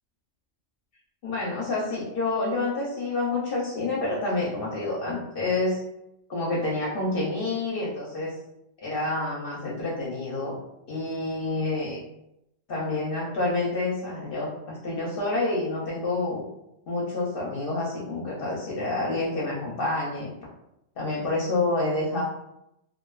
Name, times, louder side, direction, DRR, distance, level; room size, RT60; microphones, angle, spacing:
voice 1, 1.2-5.8 6.3-8.3 8.8-10.6 10.9-12.0 12.7-16.4 16.9-20.3 21.0-22.2, left 2 dB, 55° left, -5 dB, 0.7 m, -28 dB
2.4 x 2.3 x 2.3 m, 0.84 s
omnidirectional pair, 1.3 m